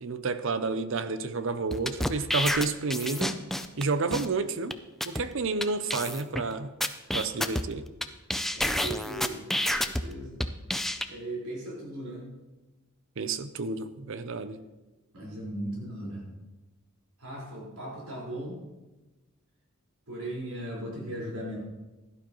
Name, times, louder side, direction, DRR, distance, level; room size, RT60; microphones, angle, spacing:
voice 1, 0.0-3.4 3.8-4.8 5.0-6.7 7.1-7.8 13.2-14.6, right 4 dB, 60° right, 12 dB, 0.6 m, -30 dB
sound 1, 1.7-3.8 4.1-4.3 4.7-4.8 5.0-5.2 5.6-5.7 5.9-6.4 6.8-8.0 8.3-10.0 10.4-11.0, left 1 dB, ahead, 0.4 m, -29 dB
voice 2, 8.5-10.4 11.1-12.3 15.1-16.2 17.2-18.6 20.1-21.6, right 1 dB, 80° right, -4 dB, 4.7 m, -38 dB
16.0 x 11.5 x 3.1 m, 1.1 s
head